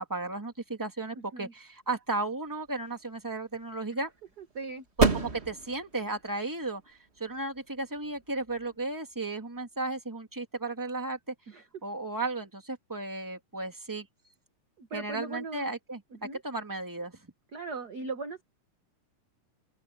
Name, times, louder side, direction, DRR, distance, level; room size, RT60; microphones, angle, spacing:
voice 1, 0.0-4.1 5.0-11.2 11.8-14.1 14.9-16.0 16.3-17.3, right 2 dB, 5° right, 2.2 m, -34 dB
voice 2, 1.1-1.5 3.9-4.0 4.5-4.8 11.5-11.6 14.8-15.7 16.1-16.4 17.5-18.4, right 3 dB, 45° right, 1.3 m, -39 dB
sound 1, 2.4-9.7, right 3 dB, 25° right, 1.7 m, -34 dB
open air
omnidirectional pair, 3.8 m